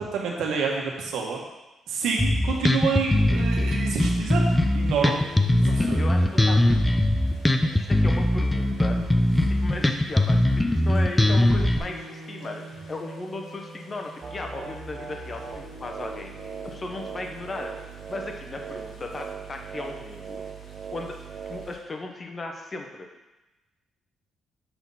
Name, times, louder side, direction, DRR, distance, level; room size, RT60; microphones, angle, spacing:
voice 1, 0.0-1.4 1.9-4.4 4.7-5.2 5.6-6.0, right 5 dB, 80° right, -1 dB, 1.5 m, -28 dB
Bass guitar, 2.2-11.8, left 1 dB, 10° left, 0.6 m, -21 dB
sound 1, 2.4-21.8, equal, 75° left, 2.0 m, -47 dB
voice 2, 5.8-7.0 7.6-9.0 9.5-16.4 16.6-17.7 18.1-20.4 20.9-21.2 21.5-23.1, left 2 dB, 30° left, 3 dB, 1.0 m, -36 dB
sound 2, 14.2-21.7, right 7 dB, 50° right, 0.6 m, -39 dB
7.1 x 3.9 x 5.6 m, 1.0 s
cardioid pair, 90°, 0 cm